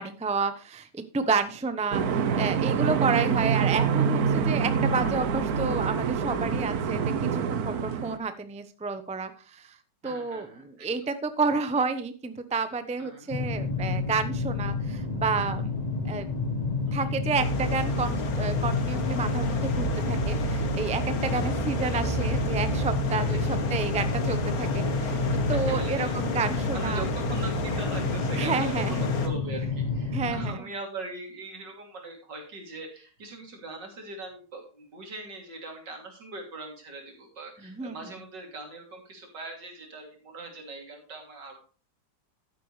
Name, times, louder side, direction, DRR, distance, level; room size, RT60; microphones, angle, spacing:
voice 1, 0.0-9.8 10.0-16.3 16.9-25.2 25.5-27.0 28.4-29.0 30.1-30.6 37.6-38.0, right 4 dB, 10° right, 10 dB, 0.5 m, -30 dB
sound 1, 1.9-8.2, right 6 dB, 65° right, 1.3 m, -26 dB
voice 2, 10.0-11.1 13.0-13.3 16.8-17.1 21.3-21.6 23.3-23.4 25.5-26.2 26.7-41.6, right 2 dB, 85° right, 2 dB, 3.6 m, -41 dB
sound 2, 13.3-30.5, left 3 dB, 25° left, 1.5 m, -30 dB
sound 3, 17.4-29.3, left 1 dB, 60° left, 1.7 m, -31 dB
12.0 x 9.4 x 3.2 m, 0.36 s
omnidirectional pair, 1.9 m